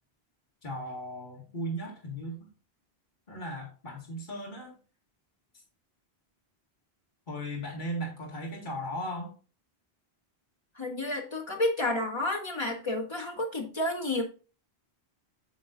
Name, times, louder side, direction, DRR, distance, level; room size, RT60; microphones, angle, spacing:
voice 1, 0.6-2.5 3.3-4.8 7.3-9.3, equal, 45° left, -2 dB, 2.2 m, -37 dB
voice 2, 10.8-14.2, left 1 dB, 25° left, 0 dB, 2.0 m, -30 dB
9.6 x 6.2 x 2.5 m, 0.34 s
omnidirectional pair, 1.1 m